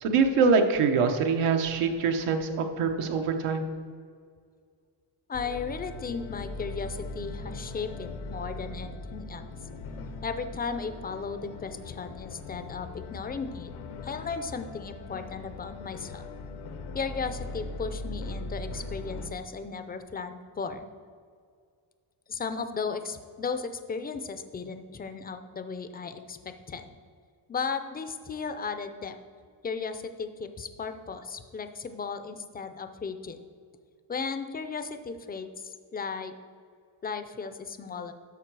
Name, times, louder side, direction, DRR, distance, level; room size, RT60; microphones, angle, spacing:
voice 1, 0.0-3.7, right 5 dB, 85° right, 5 dB, 1.1 m, -24 dB
sound 1, 5.3-19.3, left 2 dB, 85° left, 1.0 m, -40 dB
voice 2, 5.3-9.4 10.2-13.7 14.0-16.3 16.9-20.9 22.3-26.9 27.5-29.2 29.6-33.4 34.1-36.3 37.0-38.1, left 5 dB, 20° left, 9 dB, 0.4 m, -35 dB
12.5 x 4.7 x 4.7 m, 2.1 s
cardioid pair, 150°, 50 cm